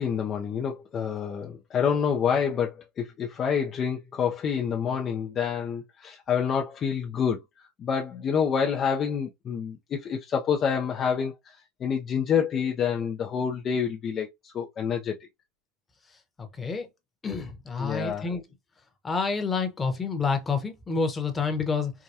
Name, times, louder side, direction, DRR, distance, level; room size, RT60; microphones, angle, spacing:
voice 1, 0.0-7.4 7.8-11.3 11.8-15.1 17.8-18.3, left 7 dB, 30° left, 0.5 m, -27 dB
voice 2, 17.2-18.4 19.0-21.9, left 4 dB, 15° left, 1.0 m, -28 dB
4.7 x 2.2 x 2.7 m
supercardioid pair, 130°, 0 cm